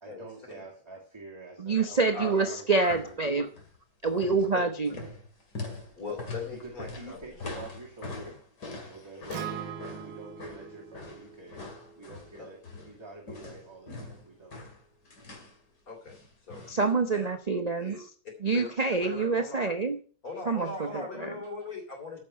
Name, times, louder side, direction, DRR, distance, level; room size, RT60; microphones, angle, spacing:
voice 1, 0.0-3.5 4.9-5.1 6.2-8.4 8.9-11.6 12.0-14.6, right 3 dB, 15° right, -2 dB, 2.0 m, -46 dB
voice 2, 1.6-3.5 4.0-4.9 16.7-18.0 18.4-20.0 20.5-21.3, right 4 dB, 55° right, 6 dB, 0.4 m, -27 dB
sound 1, 2.8-3.2 3.5-3.8 4.1-13.0 13.3-15.6 16.1-16.9 17.1-17.2, left 3 dB, 70° left, 2.9 m, -43 dB
voice 3, 6.0-7.2 12.4-12.5 15.9-16.2 16.4-17.3 17.8-18.0 18.5-18.7 19.0-19.7 20.2-22.2, left 3 dB, 50° left, 1 dB, 4.1 m, -40 dB
Acoustic guitar, 9.3-13.5, right 8 dB, 75° right, 1.5 m, -43 dB
14.0 x 6.0 x 5.7 m, 0.43 s
omnidirectional pair, 1.9 m